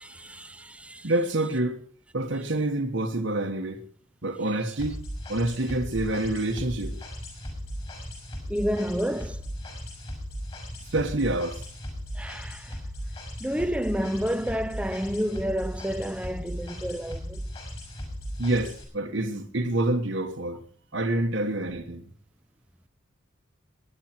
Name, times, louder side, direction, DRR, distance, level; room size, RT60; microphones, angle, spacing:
voice 1, 0.0-1.1 8.5-9.4 12.2-12.8 13.4-17.4, equal, 5° right, 0.6 m, -30 dB
voice 2, 1.0-1.8 2.1-3.8 4.2-5.0 5.3-7.0 10.9-11.6 18.4-20.6 20.9-22.1, right 2 dB, 65° right, 1.3 m, -27 dB
sound 1, 4.8-18.8, equal, 30° left, 6.2 m, -37 dB
21.5 x 10.5 x 4.4 m
head